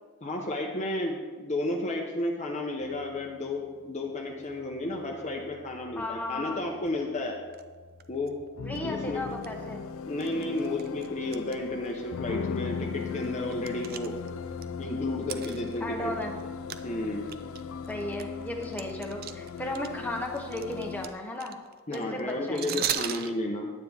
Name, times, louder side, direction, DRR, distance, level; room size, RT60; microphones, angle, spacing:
voice 1, 0.2-7.4 8.1-8.4 8.9-9.2 10.0-14.1 14.8-16.1 16.8-17.3 21.9-23.7, left 2 dB, 30° left, 1 dB, 0.8 m, -32 dB
sound 1, 2.8-21.1, left 6 dB, 65° left, 0.4 m, -39 dB
voice 2, 6.0-6.6 8.6-9.8 15.8-16.4 17.9-21.6 21.9-22.8, left 1 dB, 10° left, 0 dB, 1.0 m, -35 dB
sound 2, 7.5-7.6 8.0-8.3 8.7-8.8 9.3-9.5 10.2-11.6 11.8-11.9 12.6-12.7 13.0-14.6 15.2-16.4 16.7-16.8 17.2-19.9 20.2-23.3, right 10 dB, 45° right, 0.4 m, -36 dB
9.3 x 9.0 x 3.5 m, 1.4 s
head